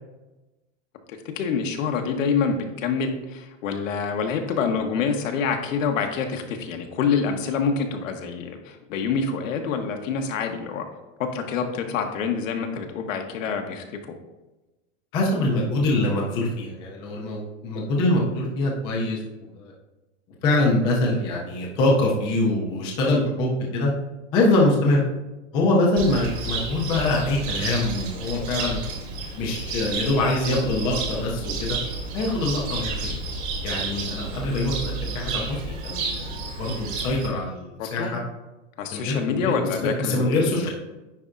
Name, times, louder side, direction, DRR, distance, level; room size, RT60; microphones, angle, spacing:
voice 1, 1.1-10.9 11.2-14.1 37.8-38.1 38.8-40.2 40.6-40.7, left 5 dB, 90° left, 5 dB, 1.1 m, -26 dB
voice 2, 15.1-19.7 20.4-23.9 24.3-25.0 25.5-28.8 29.3-31.8 32.1-33.0 33.6-38.2 38.9-39.5 39.8-40.7, left 2 dB, 15° left, -2 dB, 0.3 m, -24 dB
Cricket, 26.0-37.3, right 3 dB, 40° right, 1.3 m, -31 dB
9.5 x 4.3 x 2.5 m, 1.1 s
supercardioid pair, 170°, 38 cm